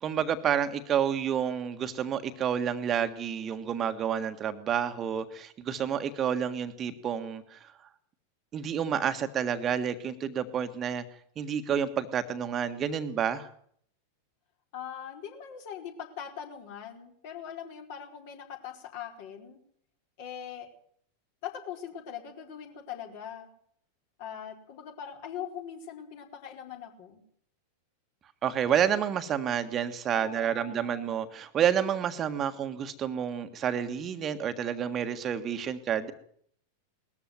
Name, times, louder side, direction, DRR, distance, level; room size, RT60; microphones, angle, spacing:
voice 1, 0.0-7.7 8.5-11.0 11.4-13.5 28.4-36.1, right 8 dB, 25° right, 9 dB, 1.6 m, -29 dB
voice 2, 14.7-19.6 20.2-20.7 21.4-23.5 24.2-27.2 30.1-31.1, left 9 dB, 50° left, 4 dB, 4.4 m, -41 dB
20.0 x 14.0 x 9.3 m, 0.63 s
figure-of-eight pair, 90°, 0 cm